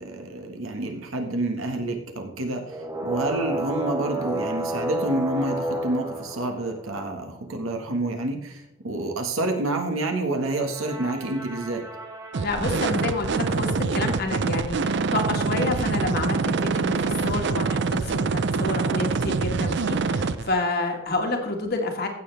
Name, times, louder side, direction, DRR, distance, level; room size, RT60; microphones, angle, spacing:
voice 1, 0.0-11.8, right 2 dB, 80° right, 4 dB, 1.6 m, -28 dB
sound 1, 2.7-7.3 10.6-13.5, right 1 dB, 15° right, 1.1 m, -32 dB
sound 2, 12.3-20.5, right 4 dB, 55° right, 0.5 m, -25 dB
voice 2, 12.4-22.1, left 2 dB, 50° left, 3 dB, 1.7 m, -29 dB
15.5 x 7.0 x 3.4 m, 0.78 s
head